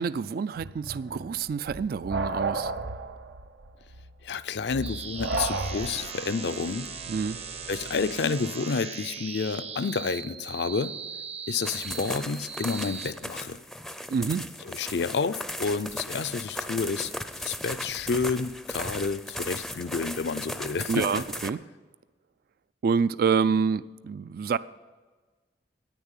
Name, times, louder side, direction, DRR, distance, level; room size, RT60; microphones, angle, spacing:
voice 1, 0.0-2.7 7.1-7.4 14.1-14.5 20.9-21.6 22.8-24.6, right 6 dB, 55° right, 16 dB, 0.3 m, -27 dB
sound 1, 0.5-6.3, right 2 dB, 90° right, 0.9 m, -33 dB
voice 2, 4.2-6.9 7.7-10.9 11.5-13.6 14.6-17.1 17.4-21.2, left 5 dB, 70° left, 12 dB, 0.5 m, -30 dB
sound 2, 4.8-13.1, right 6 dB, 35° right, 0.7 m, -39 dB
sound 3, 11.7-21.5, left 1 dB, ahead, 0.5 m, -37 dB
10.0 x 9.6 x 9.0 m, 1.4 s
head